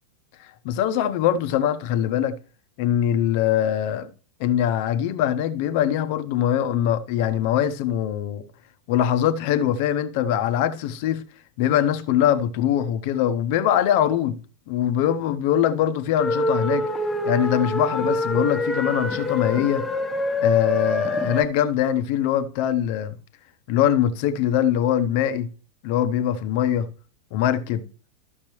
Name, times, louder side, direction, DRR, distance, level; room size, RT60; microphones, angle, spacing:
voice 1, 0.6-2.4 2.8-4.1 4.4-8.4 8.9-11.3 11.6-14.4 14.7-16.8 17.2-19.9 20.4-23.2 23.7-25.5 25.8-26.9 27.3-27.8, left 10 dB, 45° left, 0.8 m, -22 dB
sound 1, 16.2-21.4, left 1 dB, 10° left, 1.1 m, -25 dB
13.0 x 6.4 x 3.1 m
figure-of-eight pair, 90°, 0 cm